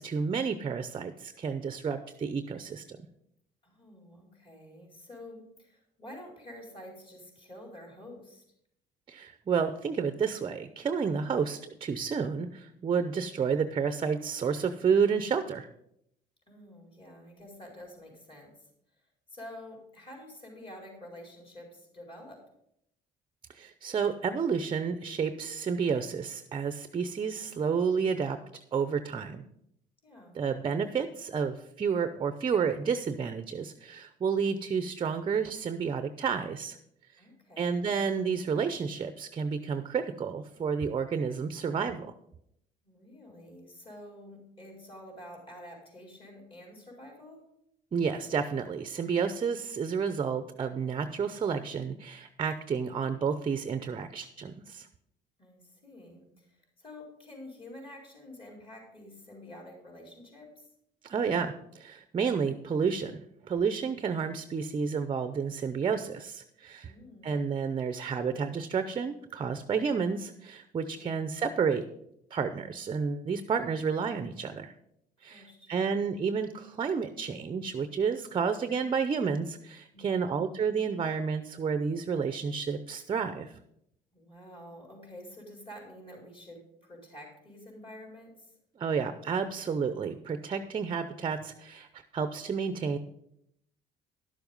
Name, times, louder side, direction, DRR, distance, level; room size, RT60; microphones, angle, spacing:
voice 1, 0.0-3.0 9.1-15.7 23.5-28.4 28.7-29.4 30.3-36.8 37.6-42.1 47.9-54.9 61.0-66.9 67.2-71.9 72.3-74.7 75.2-83.6 88.8-93.0, right 6 dB, 30° right, 10 dB, 0.6 m, -30 dB
voice 2, 3.6-8.4 16.5-18.7 19.3-22.4 30.0-30.4 37.2-37.9 42.8-47.4 55.4-60.7 66.8-67.4 70.9-71.4 75.3-76.1 79.9-80.5 84.1-88.6, left 1 dB, 30° left, -1 dB, 4.4 m, -49 dB
11.5 x 7.1 x 5.3 m, 0.76 s
cardioid pair, 110°, 17 cm